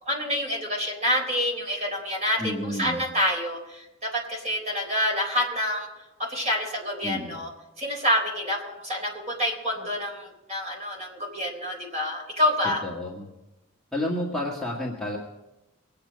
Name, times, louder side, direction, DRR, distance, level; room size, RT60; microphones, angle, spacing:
voice 1, 0.0-5.9 6.2-7.5 7.8-12.8, equal, 30° right, 0 dB, 3.9 m, -27 dB
voice 2, 2.4-3.0 7.0-7.3 12.8-13.3 13.9-15.2, left 1 dB, ahead, -5 dB, 1.8 m, -30 dB
24.0 x 9.0 x 5.2 m, 0.96 s
head